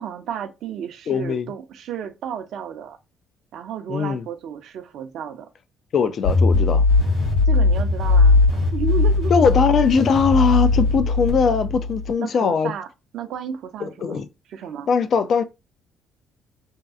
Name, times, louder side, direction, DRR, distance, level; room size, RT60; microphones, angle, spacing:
voice 1, 0.0-3.0 3.5-5.5 7.5-9.5 12.2-12.9 13.1-14.9, right 8 dB, 70° right, 0.5 m, -32 dB
voice 2, 1.1-1.5 3.9-4.2 5.9-6.8 9.3-12.7 13.8-14.3 14.9-15.4, left 5 dB, 55° left, 0.4 m, -20 dB
sound 1, 6.2-12.1, left 3 dB, 80° left, 1.2 m, -19 dB
2.6 x 2.3 x 2.4 m
hypercardioid pair, 55°, 0 cm